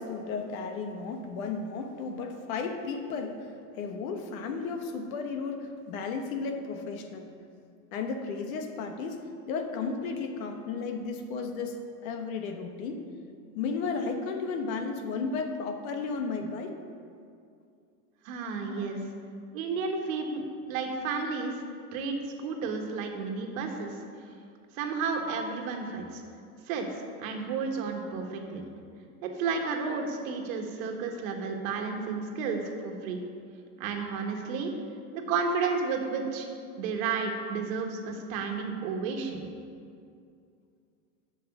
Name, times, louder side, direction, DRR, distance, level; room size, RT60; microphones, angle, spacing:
voice 1, 0.0-7.3 7.9-13.0 13.5-16.7 18.7-18.9 21.1-21.3, left 4 dB, 65° left, 5 dB, 1.2 m, -34 dB
voice 2, 18.2-19.0 19.5-20.4 20.7-21.6 21.9-22.1 22.4-24.0 24.7-26.2 26.7-26.9 27.2-28.6 29.2-33.2 33.8-34.7 35.1-36.5 36.8-39.5, right 5 dB, 60° right, 3 dB, 1.5 m, -32 dB
7.8 x 6.1 x 7.1 m, 2.4 s
supercardioid pair, 140°, 45 cm